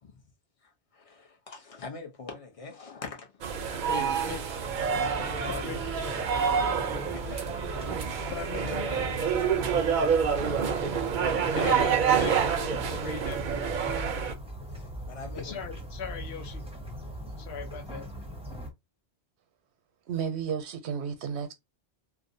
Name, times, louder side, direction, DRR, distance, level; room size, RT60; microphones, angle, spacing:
voice 1, 0.6-4.2 5.0-5.7 6.8-7.4 7.8-10.3 14.7-15.7, left 4 dB, 35° left, 0.7 m, -44 dB
sound 1, 3.4-14.3, right 7 dB, 55° right, 0.6 m, -28 dB
voice 2, 3.9-4.4 5.5-5.8 8.3-8.7 11.5-13.7 15.4-16.6 17.4-18.1, left 6 dB, 70° left, 0.9 m, -38 dB
sound 2, 4.7-18.7, equal, 5° right, 0.5 m, -40 dB
voice 3, 20.1-21.5, right 7 dB, 85° right, 0.9 m, -32 dB
2.6 x 2.0 x 2.6 m
omnidirectional pair, 1.1 m